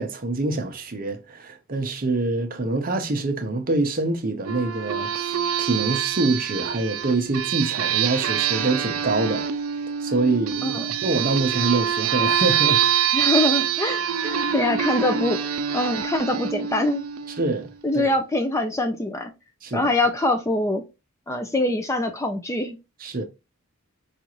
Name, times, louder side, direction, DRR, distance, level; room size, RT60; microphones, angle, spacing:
voice 1, 0.0-9.5 10.0-12.8 17.4-17.7 17.9-18.1 19.6-19.9 23.0-23.2, right 2 dB, 40° right, 0.7 m, -25 dB
sound 1, 4.5-17.7, right 9 dB, 75° right, 0.4 m, -25 dB
voice 2, 13.1-17.0 17.8-19.3 19.7-20.8 21.3-22.8, left 2 dB, 15° left, 0.3 m, -24 dB
5.1 x 2.4 x 3.0 m
head